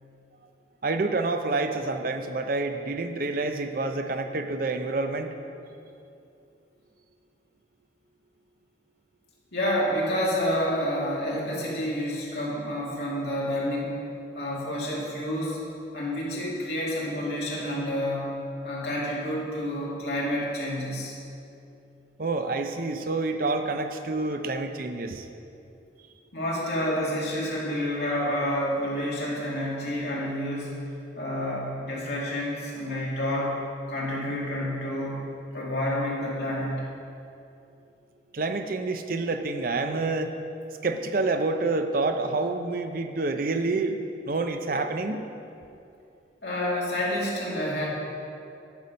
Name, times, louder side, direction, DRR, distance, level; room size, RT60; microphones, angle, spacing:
voice 1, 0.8-5.3 22.2-25.3 38.3-40.3 40.8-44.0 44.3-45.2, right 3 dB, 50° right, 7 dB, 0.5 m, -28 dB
voice 2, 9.5-14.0 14.3-15.6 15.9-18.3 18.6-21.1 26.3-30.8 31.1-33.6 33.9-35.3 35.5-36.8 46.4-47.9, equal, 65° left, -6 dB, 2.5 m, -29 dB
10.5 x 7.1 x 5.2 m, 2.6 s
head